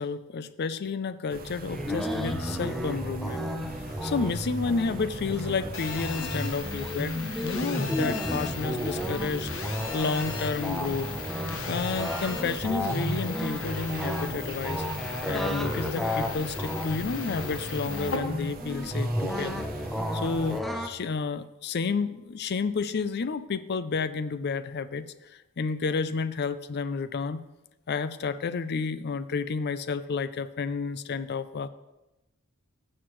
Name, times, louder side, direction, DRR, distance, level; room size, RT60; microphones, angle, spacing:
voice 1, 0.0-3.5 3.7-9.5 9.9-11.1 11.7-14.8 15.3-19.6 20.1-27.4 27.9-31.7, left 4 dB, 50° left, 14 dB, 0.5 m, -31 dB
sound 1, 1.3-20.6, right 3 dB, 40° right, 0.7 m, -42 dB
sound 2, 1.7-20.9, equal, ahead, 0.6 m, -33 dB
Telephone, 5.7-18.2, left 6 dB, 65° left, 1.0 m, -38 dB
15.5 x 6.5 x 3.1 m, 0.98 s
head